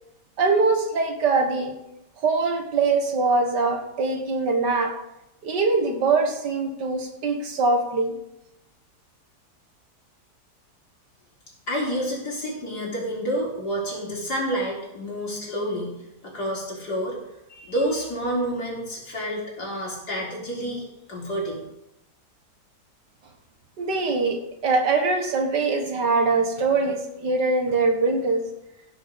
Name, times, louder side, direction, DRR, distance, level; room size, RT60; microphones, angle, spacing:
voice 1, 0.4-1.8 2.2-5.0 5.4-8.1 23.8-28.4, right 3 dB, 85° right, 4 dB, 2.3 m, -23 dB
voice 2, 11.7-15.9 16.2-17.2 17.5-21.6, equal, 70° left, -4 dB, 4.3 m, -29 dB
15.5 x 7.6 x 5.3 m, 0.89 s
omnidirectional pair, 1.8 m